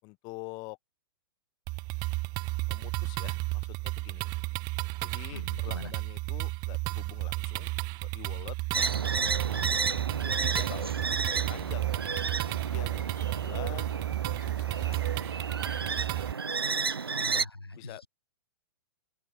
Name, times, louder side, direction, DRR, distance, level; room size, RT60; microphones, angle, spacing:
voice 1, 0.0-0.8 2.7-4.3 5.0-7.7 8.0-8.9 9.2-9.8 10.2-11.9 12.6-14.0 14.3-15.0 15.5-16.1 16.6-17.4 17.8-18.0, left 26 dB, 35° left, 6.7 m, -46 dB
sound 1, 1.7-16.3, right 25 dB, 30° right, 0.6 m, -33 dB
voice 2, 5.3-5.9 17.2-18.1, left 2 dB, 90° left, 7.6 m, -43 dB
sound 2, 8.7-17.4, right 5 dB, 80° right, 0.7 m, -32 dB
open air
figure-of-eight pair, 110°, 12 cm